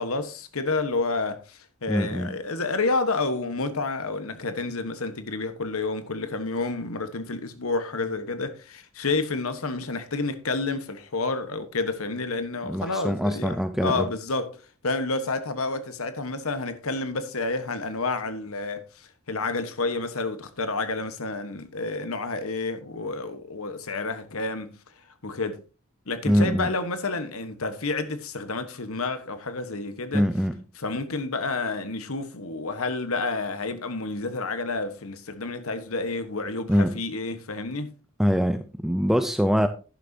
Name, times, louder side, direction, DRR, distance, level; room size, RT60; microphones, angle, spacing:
voice 1, 0.0-24.8 25.2-25.6 26.1-30.2 30.8-37.9, left 3 dB, 65° left, 1.3 m, -30 dB
voice 2, 1.9-2.4 12.6-14.1 26.2-26.7 30.1-30.6 36.7-37.0 38.2-39.7, equal, ahead, 0.5 m, -23 dB
11.0 x 10.5 x 2.8 m
head